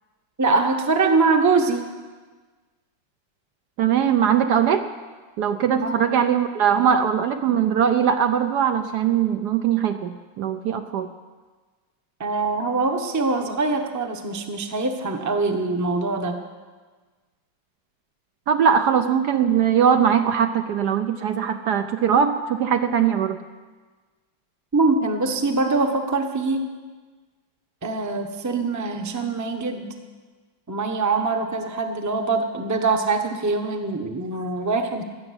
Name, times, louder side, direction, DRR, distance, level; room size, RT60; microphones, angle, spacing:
voice 1, 0.4-1.8 5.8-6.1 12.2-16.4 24.7-26.7 27.8-29.9 30.7-35.0, right 3 dB, 15° right, 4 dB, 0.7 m, -23 dB
voice 2, 3.8-4.8 5.4-11.1 18.5-23.4, right 8 dB, 70° right, 7 dB, 1.1 m, -21 dB
16.0 x 7.3 x 9.7 m, 1.4 s
omnidirectional pair, 2.1 m